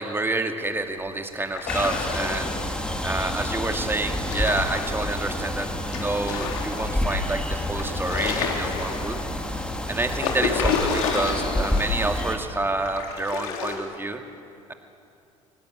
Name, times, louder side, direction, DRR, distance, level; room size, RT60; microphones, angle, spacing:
voice 1, 0.0-2.6 3.0-9.2 9.9-14.2, right 2 dB, 10° right, 5 dB, 2.5 m, -28 dB
sound 1, 1.4-2.8 4.0-5.1 5.9-6.9 7.4-7.5 7.8-9.3 10.0-11.9 12.2-12.3 12.8-13.8, left 5 dB, 60° left, 3.9 m, -30 dB
sound 2, 1.7-12.4, left 1 dB, 5° left, 3.3 m, -29 dB
23.5 x 20.5 x 8.7 m, 2.5 s
figure-of-eight pair, 60°, 18 cm